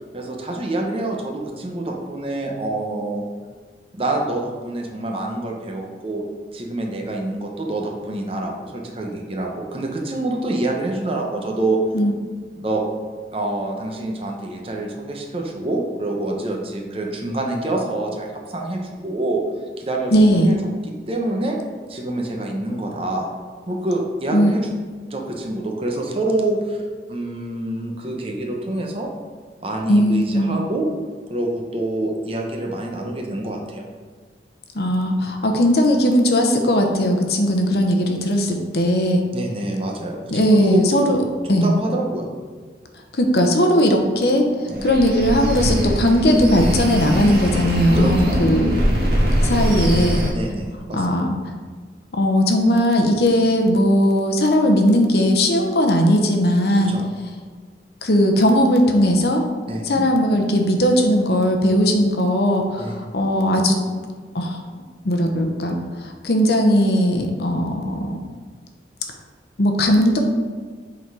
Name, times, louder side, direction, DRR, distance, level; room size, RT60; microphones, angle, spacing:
voice 1, 0.1-3.2 3.9-6.2 6.5-11.8 12.6-12.8 13.3-19.4 19.8-20.6 20.8-21.6 21.9-23.3 23.7-24.7 25.1-26.8 27.1-29.1 29.6-30.9 31.3-33.9 39.3-40.8 41.6-42.3 44.7-44.9 47.9-48.4 50.3-51.3 56.7-57.1 59.7-60.0 62.8-63.0, right 2 dB, 30° right, 1 dB, 0.9 m, -26 dB
voice 2, 20.1-20.5 24.3-24.5 29.9-30.5 34.7-39.2 40.3-41.2 41.5-41.7 43.1-48.7 49.4-50.2 50.9-51.4 52.2-57.0 58.0-59.4 59.8-63.8 64.3-64.6 65.0-68.2 69.6-70.2, equal, 65° left, 3 dB, 0.9 m, -18 dB
sound 1, 44.7-50.3, equal, 60° right, 1.6 m, -21 dB
7.8 x 4.1 x 4.7 m, 1.5 s
head